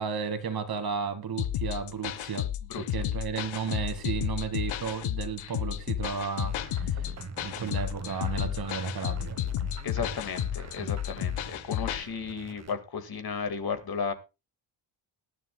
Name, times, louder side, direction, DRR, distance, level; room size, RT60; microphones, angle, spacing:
voice 1, 0.0-2.5 2.8-7.1 7.4-9.4, right 6 dB, 50° right, 8 dB, 2.2 m, -33 dB
sound 1, 1.4-12.0, left 11 dB, 75° left, 0.9 m, -32 dB
voice 2, 2.7-3.0 9.8-14.1, left 6 dB, 50° left, 8 dB, 2.0 m, -34 dB
sound 2, 6.4-12.8, right 5 dB, 35° right, 1.3 m, -43 dB
19.5 x 11.0 x 2.3 m, 0.26 s
cardioid pair, 100°, 48 cm